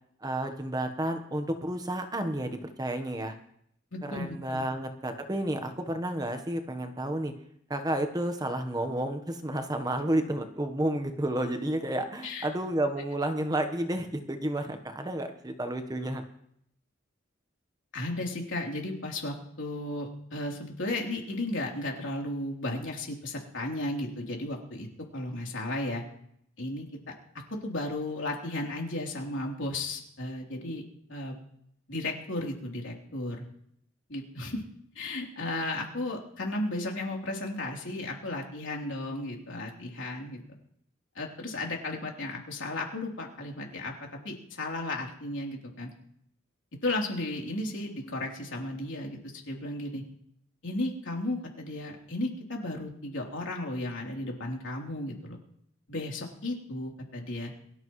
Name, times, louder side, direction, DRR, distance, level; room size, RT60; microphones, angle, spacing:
voice 1, 0.2-3.4 4.0-7.3 7.7-16.2, right 1 dB, 20° right, 7 dB, 1.2 m, -31 dB
voice 2, 3.9-4.6 12.2-12.5 17.9-24.9 25.1-26.0 26.6-26.9 27.6-30.8 31.1-31.4 31.9-33.4 34.1-34.6 35.0-40.4 41.2-43.9 44.2-45.9 46.8-49.2 49.5-50.0 50.6-55.4 55.9-57.5, left 2 dB, 75° left, -1 dB, 3.5 m, -34 dB
23.0 x 13.0 x 3.2 m, 0.70 s
head